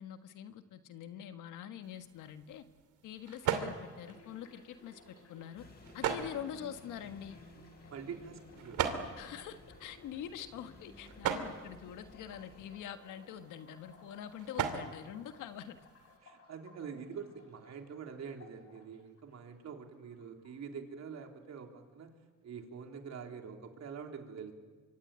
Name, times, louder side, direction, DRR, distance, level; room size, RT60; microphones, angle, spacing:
voice 1, 0.0-2.6 3.0-5.6 5.9-7.4 9.2-15.8, left 9 dB, 90° left, 8 dB, 1.6 m, -45 dB
sound 1, 1.8-16.2, right 8 dB, 85° right, 2.7 m, -41 dB
sound 2, 3.8-19.8 20.0-21.0 21.2-21.6, left 2 dB, 50° left, 6.5 m, -60 dB
sound 3, 5.6-12.7, left 2 dB, 30° left, 4.5 m, -57 dB
voice 2, 7.9-8.9 16.2-22.1 22.4-24.5, right 6 dB, 60° right, 3 dB, 3.6 m, -46 dB
25.0 x 24.5 x 8.9 m, 1.4 s
cardioid pair, 90°, 30 cm